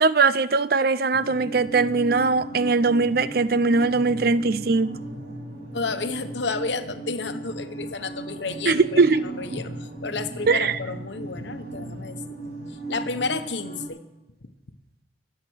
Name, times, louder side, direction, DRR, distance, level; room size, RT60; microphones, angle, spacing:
voice 1, 0.0-5.0 8.7-9.2 10.5-10.8, right 4 dB, 55° right, 0.6 m, -20 dB
sound 1, 1.1-13.9, right 2 dB, 90° right, 5.8 m, -37 dB
voice 2, 5.7-12.2 12.9-14.0, left 4 dB, 75° left, 1.2 m, -31 dB
24.0 x 8.5 x 6.3 m
head